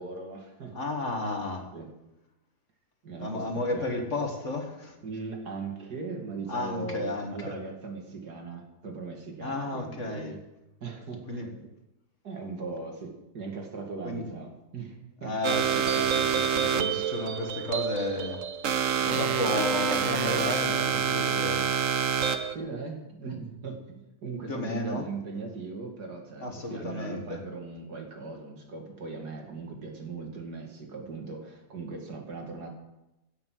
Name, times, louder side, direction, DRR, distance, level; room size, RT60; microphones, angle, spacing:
voice 1, 0.0-0.8 1.7-1.9 3.0-3.9 5.0-10.4 10.8-11.7 12.2-15.4 16.8-17.0 19.1-19.3 22.5-32.7, right 4 dB, 75° right, 2 dB, 2.8 m, -39 dB
voice 2, 0.7-1.7 3.2-5.0 6.5-7.6 9.4-10.3 11.3-11.5 14.0-14.3 15.2-18.4 19.1-21.7 24.5-25.1 25.4-25.5 26.4-27.4, left 2 dB, 50° left, 3 dB, 2.1 m, -33 dB
sound 1, 15.4-22.5, right 8 dB, 60° right, 1.1 m, -27 dB
16.5 x 6.7 x 7.7 m, 0.95 s
omnidirectional pair, 1.7 m